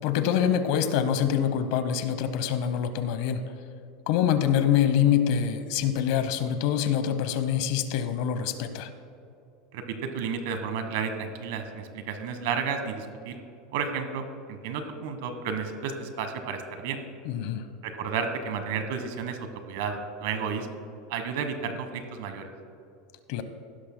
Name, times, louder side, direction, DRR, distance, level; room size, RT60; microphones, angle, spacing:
voice 1, 0.0-3.4 4.1-8.9 17.2-17.7 23.3-23.4, left 9 dB, 65° left, 10 dB, 0.9 m, -25 dB
voice 2, 9.7-13.4 13.7-17.0 17.8-20.7 21.1-22.5, right 6 dB, 75° right, 8 dB, 1.3 m, -32 dB
16.5 x 12.0 x 2.2 m, 2.6 s
supercardioid pair, 125°, 0 cm